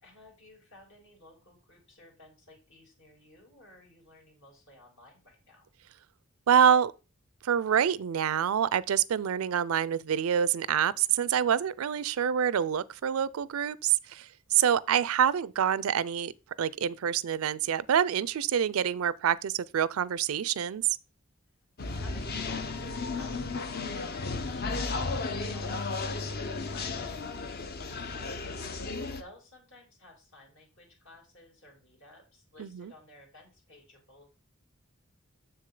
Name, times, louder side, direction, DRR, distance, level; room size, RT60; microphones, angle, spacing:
voice 1, 0.0-5.7 14.5-14.8 21.8-34.3, left 1 dB, 65° left, 3.2 m, -54 dB
voice 2, 6.5-6.9 7.4-16.3 16.6-20.9 32.6-32.9, right 8 dB, 80° right, 0.4 m, -26 dB
sound 1, 21.8-29.2, left 3 dB, 50° left, 0.7 m, -34 dB
7.1 x 6.5 x 3.8 m
head